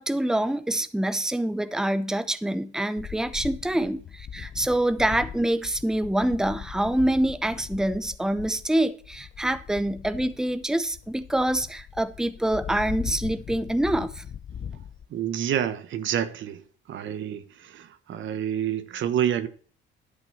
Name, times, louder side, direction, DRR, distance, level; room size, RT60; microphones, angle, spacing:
voice 1, 0.0-14.2, right 1 dB, 5° right, 0.8 m, -26 dB
sound 1, 3.0-15.1, left 8 dB, 45° left, 0.6 m, -40 dB
voice 2, 15.1-16.6 16.9-19.5, right 10 dB, 75° right, 1.2 m, -28 dB
11.0 x 6.0 x 5.5 m
cardioid pair, 90°, 20 cm